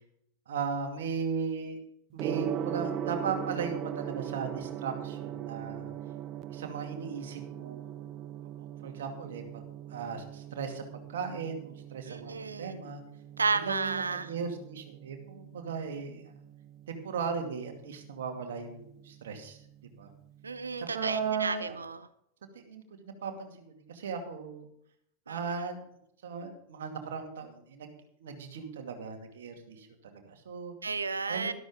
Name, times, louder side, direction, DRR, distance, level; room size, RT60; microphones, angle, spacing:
voice 1, 0.5-1.8 2.1-5.9 6.5-8.1 8.8-9.6 9.9-10.8 11.1-13.0 13.5-16.4 16.9-19.6 20.0-20.1 20.8-21.8 22.5-24.7 25.3-25.8 26.2-27.9 28.2-30.7 31.3-31.5, right 5 dB, 60° right, 4 dB, 2.4 m, -37 dB
Gong, 2.2-21.2, right 10 dB, 35° right, 0.8 m, -40 dB
voice 2, 12.1-12.8 13.4-14.3 20.4-22.1 25.3-25.6 30.8-31.5, right 4 dB, 75° right, 14 dB, 0.7 m, -32 dB
13.0 x 13.0 x 3.8 m, 0.71 s
figure-of-eight pair, 90°, 0 cm